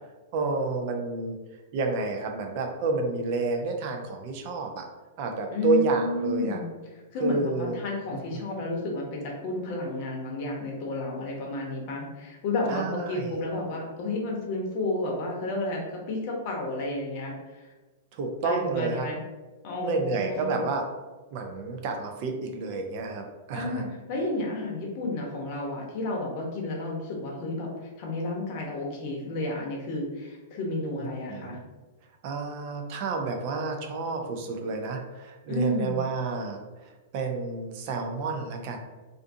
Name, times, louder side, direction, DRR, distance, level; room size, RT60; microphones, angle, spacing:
voice 1, 0.3-1.4 1.7-4.8 5.2-6.6 7.2-7.8 8.3-8.4 12.7-13.3 18.1-19.1 19.8-20.8 21.3-23.8 31.0-31.6 32.2-36.6 36.8-38.8, right 3 dB, 50° right, 3 dB, 0.4 m, -30 dB
voice 2, 5.5-6.7 7.1-9.1 9.4-17.3 18.4-19.2 19.6-20.6 23.5-27.7 28.0-31.6 35.5-36.0, left 2 dB, 50° left, -1 dB, 0.7 m, -31 dB
2.5 x 2.3 x 2.6 m, 1.2 s
hypercardioid pair, 130°, 0 cm